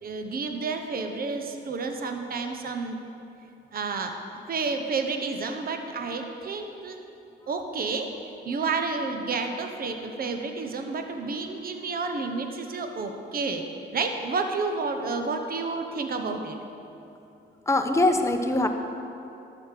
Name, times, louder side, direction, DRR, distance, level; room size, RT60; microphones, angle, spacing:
voice 1, 0.0-3.0 3.7-4.2 4.5-7.0 7.5-8.1 8.4-13.6 13.9-16.6, right 4 dB, 50° right, 5 dB, 1.1 m, -30 dB
voice 2, 17.7-18.7, left 2 dB, 15° left, 4 dB, 1.0 m, -22 dB
12.5 x 6.5 x 6.9 m, 2.8 s
cardioid pair, 90°, 20 cm